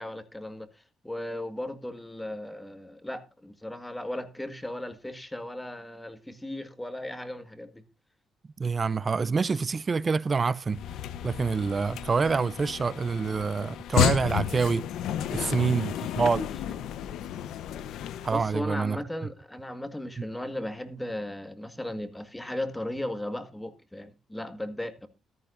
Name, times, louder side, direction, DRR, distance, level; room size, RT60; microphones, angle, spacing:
voice 1, 0.0-7.8 15.3-16.5 18.3-25.1, left 1 dB, 10° left, 1.8 m, -37 dB
voice 2, 8.6-10.8 11.2-14.9 15.3-16.5 18.2-19.0 20.2-20.3, right 5 dB, 35° right, 0.5 m, -26 dB
sound 1, 10.7-18.5, left 10 dB, 80° left, 1.0 m, -32 dB
14.5 x 13.0 x 2.6 m
cardioid pair, 90°, 0 cm